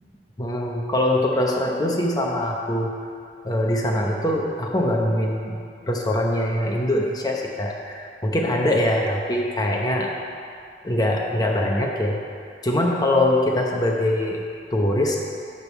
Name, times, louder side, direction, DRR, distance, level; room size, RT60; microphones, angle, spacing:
voice 1, 0.4-2.9 3.4-5.6 5.9-10.1 10.8-12.2 12.6-14.4 14.7-15.2, left 1 dB, 25° left, -1 dB, 0.8 m, -23 dB
10.5 x 3.6 x 7.0 m, 2.4 s
head